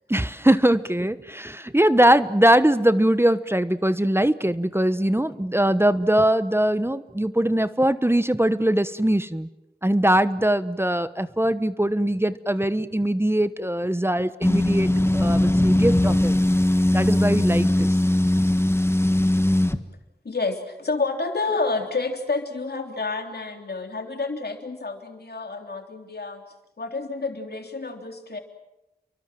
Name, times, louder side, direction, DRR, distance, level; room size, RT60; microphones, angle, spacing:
voice 1, 0.1-9.5 9.8-16.3 16.9-17.9, right 1 dB, 15° right, 13 dB, 1.1 m, -21 dB
sound 1, 14.4-19.8, left 1 dB, 15° left, 1.7 m, -20 dB
voice 2, 20.2-26.4 26.8-28.4, left 3 dB, 75° left, 4 dB, 3.5 m, -29 dB
30.0 x 23.5 x 7.7 m, 0.95 s
cardioid pair, 40°, 17 cm